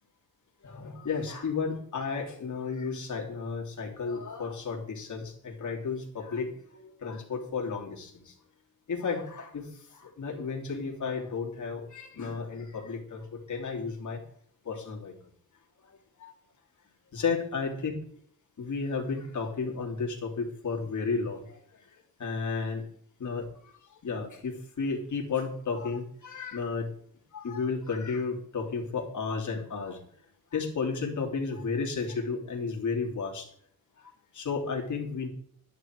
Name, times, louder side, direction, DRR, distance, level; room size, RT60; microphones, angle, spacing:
voice 1, 0.6-8.3 8.9-9.7 9.9-14.2 14.6-15.1 16.2-16.3 17.1-17.9 18.6-21.6 22.2-22.8 23.2-23.7 24.0-26.9 27.3-30.0 30.5-33.5 34.0-35.3, left 4 dB, 55° left, 0 dB, 3.2 m, -33 dB
12.5 x 10.0 x 4.7 m, 0.63 s
wide cardioid pair, 140°, 35 cm